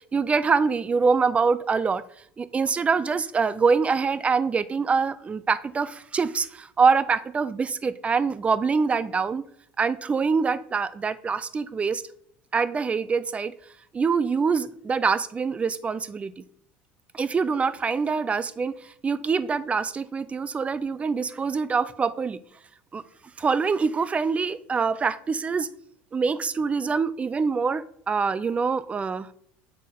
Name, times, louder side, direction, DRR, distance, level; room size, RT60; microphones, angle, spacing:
voice 1, 0.1-2.0 2.4-9.5 9.8-12.0 12.5-13.5 13.9-16.4 17.1-22.4 22.9-23.0 23.4-25.7 26.1-29.3, right 5 dB, 25° right, 0.3 m, -25 dB
6.5 x 4.0 x 3.6 m
supercardioid pair, 100°, 6 cm